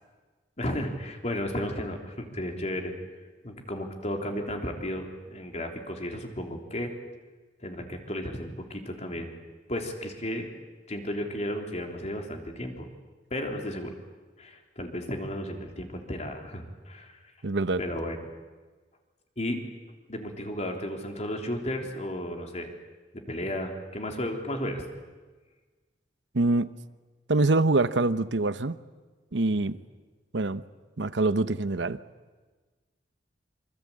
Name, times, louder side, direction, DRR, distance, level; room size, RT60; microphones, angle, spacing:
voice 1, 0.6-2.9 3.4-6.9 7.6-9.4 9.7-10.5 10.9-12.9 13.3-13.9 14.4-17.2 17.8-18.3 19.4-19.6 20.1-22.7 23.3-24.9 29.6-29.7, left 1 dB, 40° left, 3 dB, 3.5 m, -33 dB
voice 2, 17.4-17.8 26.3-26.7 27.3-28.8 29.3-29.8 30.3-30.6 31.0-32.0, right 2 dB, 75° right, 14 dB, 0.9 m, -25 dB
26.5 x 25.0 x 8.7 m, 1.3 s
head